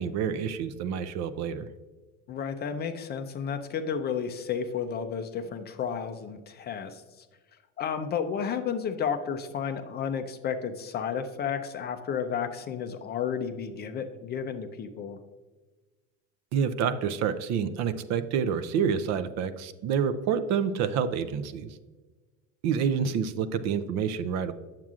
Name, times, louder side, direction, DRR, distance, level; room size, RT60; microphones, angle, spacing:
voice 1, 0.0-1.7 16.5-21.8 22.6-24.5, right 7 dB, 45° right, 12 dB, 0.5 m, -28 dB
voice 2, 2.3-7.3 7.8-15.2, left 7 dB, 30° left, 8 dB, 0.4 m, -32 dB
8.9 x 7.3 x 2.4 m, 1.3 s
supercardioid pair, 130°, 36 cm